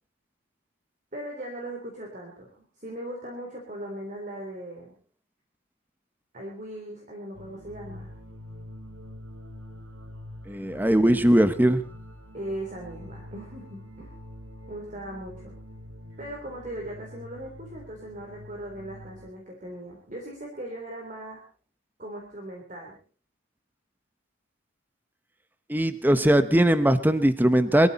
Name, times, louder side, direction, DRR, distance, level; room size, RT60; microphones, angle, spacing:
voice 1, 1.1-4.9 6.3-8.1 10.7-11.7 12.3-14.1 14.7-15.5 16.2-21.4 22.0-23.0, right 1 dB, 40° right, 0 dB, 3.5 m, -39 dB
sound 1, 7.3-19.3, left 1 dB, 80° right, 2.5 m, -45 dB
voice 2, 10.5-11.8 25.7-27.9, right 1 dB, 10° right, 12 dB, 0.8 m, -20 dB
22.0 x 14.5 x 4.2 m, 0.40 s
head